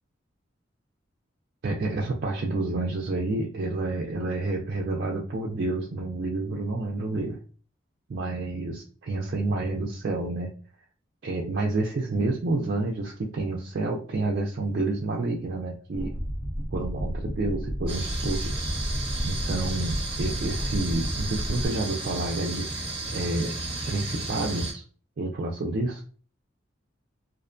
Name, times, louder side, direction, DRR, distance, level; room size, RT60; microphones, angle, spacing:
voice 1, 1.6-7.4 8.1-10.5 11.2-16.2 16.7-18.9 19.2-23.6 23.9-24.8 25.2-26.0, right 2 dB, 55° right, -1 dB, 0.4 m, -29 dB
sound 1, 15.9-21.7, equal, 80° left, 1.0 m, -32 dB
sound 2, 17.9-24.7, right 2 dB, 30° right, 0.8 m, -33 dB
2.5 x 2.1 x 2.5 m, 0.40 s
head